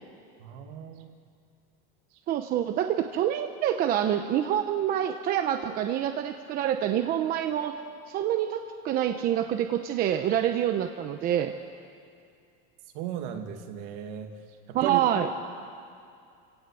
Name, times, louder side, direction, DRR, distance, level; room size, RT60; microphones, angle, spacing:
voice 1, 0.4-1.1 12.9-14.3 14.7-15.1, right 10 dB, 60° right, 5 dB, 2.3 m, -35 dB
voice 2, 2.3-7.8 8.1-11.5 14.7-15.3, right 10 dB, 30° right, 7 dB, 0.8 m, -27 dB
29.0 x 17.0 x 8.3 m, 2.4 s
cardioid pair, 170°, 29 cm